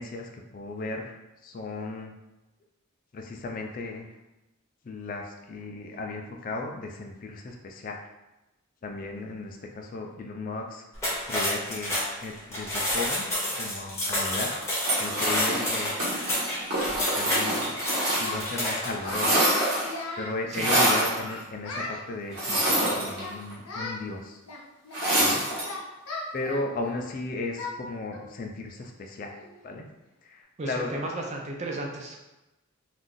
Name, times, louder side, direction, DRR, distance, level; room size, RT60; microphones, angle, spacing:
voice 1, 0.0-2.1 3.1-4.1 4.8-8.0 8.8-10.8 11.3-13.2 13.5-14.5 15.0-15.9 17.1-17.7 18.2-19.4 20.2-24.4 25.2-25.4 26.3-29.9 30.2-31.3, left 3 dB, 40° left, 2 dB, 0.3 m, -35 dB
sound 1, 10.9-19.0, left 1 dB, 15° left, 0.7 m, -29 dB
Singing, 13.5-13.6 14.3-15.6 15.8-16.0 16.3-16.5 16.7-17.1 17.4-17.6 17.8-18.7 19.0-20.4 20.8-22.0 22.7-23.4 23.7-24.0 24.5-27.1 27.6-27.8 28.1-28.3 28.7-28.8 29.3-29.6, left 2 dB, 75° left, 0.6 m, -38 dB
sound 2, 14.8-18.6 18.8-20.0 20.5-21.2 22.3-23.5 24.9-25.7, right 1 dB, 45° right, 1.2 m, -26 dB
voice 2, 30.6-32.2, right 2 dB, 30° right, 0 dB, 0.4 m, -33 dB
2.5 x 2.4 x 3.6 m, 1.0 s
head